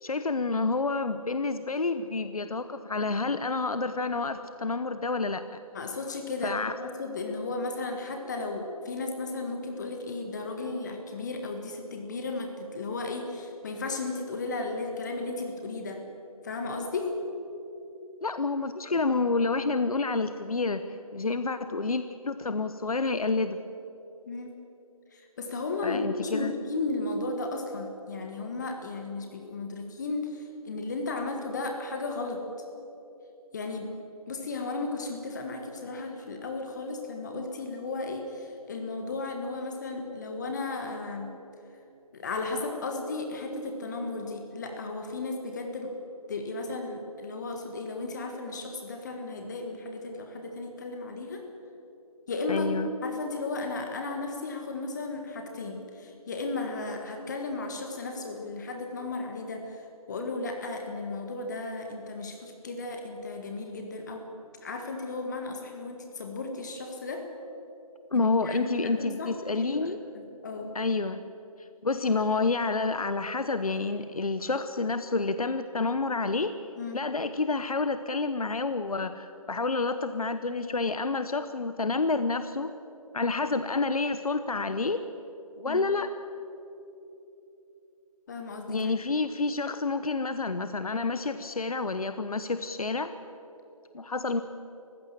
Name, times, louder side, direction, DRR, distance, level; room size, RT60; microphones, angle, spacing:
voice 1, 0.0-5.6 6.4-6.7 18.2-20.8 21.1-23.6 25.8-26.5 52.5-52.9 68.1-70.0 70.7-71.2 71.8-76.5 76.9-82.7 83.1-85.0 85.6-86.1 88.7-93.1 93.9-94.4, left 3 dB, 75° left, 11 dB, 1.0 m, -29 dB
voice 2, 5.7-16.0 16.4-17.2 24.3-24.6 25.1-32.4 33.5-33.9 34.3-41.3 42.1-45.9 46.3-51.4 52.3-52.7 53.0-64.3 64.6-67.2 68.1-69.9 70.4-70.7 76.8-77.0 85.6-85.8 88.3-88.9, left 3 dB, 30° left, 3 dB, 1.7 m, -35 dB
24.0 x 15.5 x 7.5 m, 3.0 s
figure-of-eight pair, 155°, 19 cm